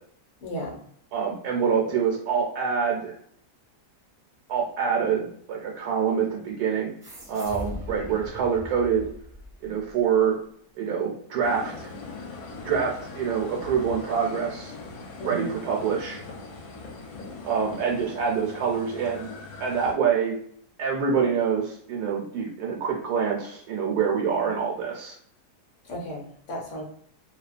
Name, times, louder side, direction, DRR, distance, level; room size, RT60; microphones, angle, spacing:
voice 1, 0.4-0.8 15.2-15.6 25.8-26.8, equal, 60° left, -2 dB, 0.9 m, -34 dB
voice 2, 1.1-3.1 4.5-6.9 7.3-9.1 9.6-10.4 10.8-11.9 12.6-14.7 15.2-16.2 17.4-19.3 19.6-20.4 20.8-25.2, right 6 dB, 75° right, -1 dB, 1.1 m, -26 dB
sound 1, 7.0-10.1, equal, 40° right, 0.5 m, -40 dB
sound 2, 11.4-19.9, left 3 dB, 75° left, 1.1 m, -41 dB
2.8 x 2.1 x 2.4 m, 0.64 s
omnidirectional pair, 1.7 m